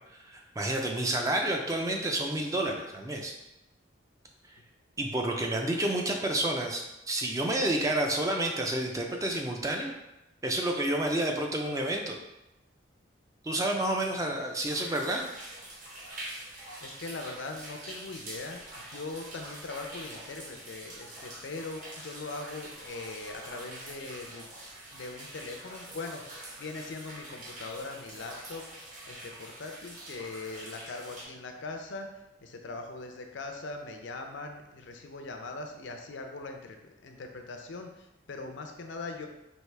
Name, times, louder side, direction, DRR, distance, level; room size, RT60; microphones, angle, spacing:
voice 1, 0.1-3.3 5.0-9.9 10.4-12.1 13.4-15.2, right 1 dB, 15° right, 1 dB, 0.4 m, -29 dB
sound 1, 14.6-31.2, right 1 dB, 40° right, 1.0 m, -45 dB
voice 2, 16.8-24.5 24.9-39.3, left 3 dB, 70° left, 4 dB, 0.5 m, -41 dB
4.6 x 2.7 x 3.2 m, 0.95 s
head